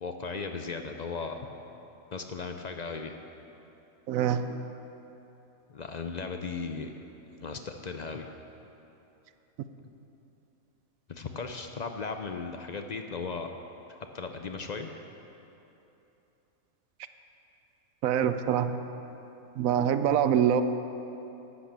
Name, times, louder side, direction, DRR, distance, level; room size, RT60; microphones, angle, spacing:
voice 1, 0.0-1.4 2.1-3.2 5.7-6.9 7.4-8.3 11.1-13.5 14.1-14.9, left 4 dB, 50° left, 5 dB, 0.5 m, -36 dB
voice 2, 4.1-4.6 18.0-18.8 19.6-20.6, right 9 dB, 80° right, 10 dB, 1.0 m, -25 dB
12.0 x 8.3 x 7.4 m, 3.0 s
omnidirectional pair, 1.4 m